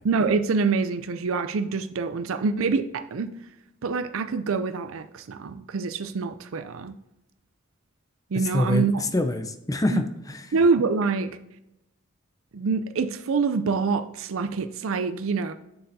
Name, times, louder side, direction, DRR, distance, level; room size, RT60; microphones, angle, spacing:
voice 1, 0.0-3.3 3.8-6.9 8.3-9.0 9.9-10.0 10.5-11.4 12.5-15.5, right 4 dB, 85° right, 10 dB, 0.5 m, -25 dB
voice 2, 8.3-10.5, left 1 dB, 15° left, 8 dB, 0.6 m, -26 dB
7.4 x 6.9 x 2.7 m, 0.88 s
head